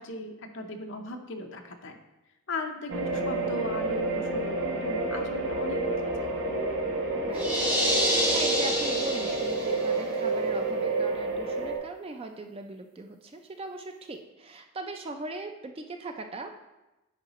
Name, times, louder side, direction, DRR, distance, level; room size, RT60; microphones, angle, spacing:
voice 1, 0.0-2.0 2.5-6.3, left 2 dB, 55° left, 4 dB, 0.7 m, -38 dB
sound 1, 2.9-11.8, right 2 dB, 50° right, 1.0 m, -29 dB
sound 2, 7.3-9.8, equal, 10° right, 0.9 m, -27 dB
voice 2, 7.3-16.5, right 2 dB, 25° right, 6 dB, 0.3 m, -40 dB
9.4 x 4.8 x 3.0 m, 1.0 s
head